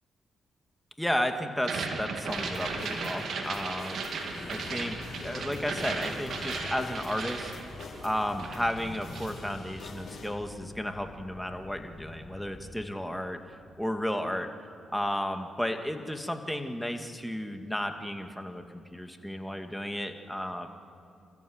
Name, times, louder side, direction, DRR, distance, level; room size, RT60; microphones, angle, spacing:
voice 1, 1.0-4.0 4.5-7.5 8.0-13.4 13.8-14.5 14.9-20.7, equal, 5° left, 5 dB, 2.4 m, -33 dB
sound 1, 1.6-8.1 8.4-9.4, right 4 dB, 65° right, 2.5 m, -36 dB
sound 2, 2.3-10.3, left 3 dB, 70° left, 5.3 m, -44 dB
sound 3, 4.5-12.9, left 3 dB, 45° left, 4.0 m, -48 dB
28.5 x 14.5 x 8.1 m, 2.6 s
supercardioid pair, 50°, 0 cm